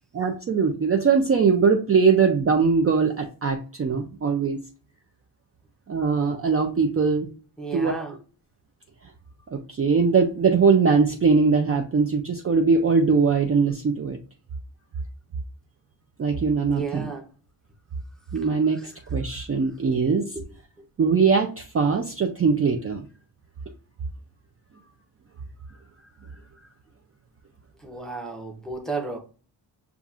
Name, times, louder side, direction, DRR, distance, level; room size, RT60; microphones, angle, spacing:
voice 1, 0.1-4.6 5.9-7.3 7.7-7.9 9.5-14.2 16.2-17.1 18.3-20.3 21.0-23.0, right 5 dB, 35° right, 0.4 m, -21 dB
voice 2, 7.6-8.1 16.7-17.3 27.8-29.2, right 4 dB, ahead, 0.7 m, -33 dB
6.9 x 2.4 x 2.4 m
wide cardioid pair, 165°, 46 cm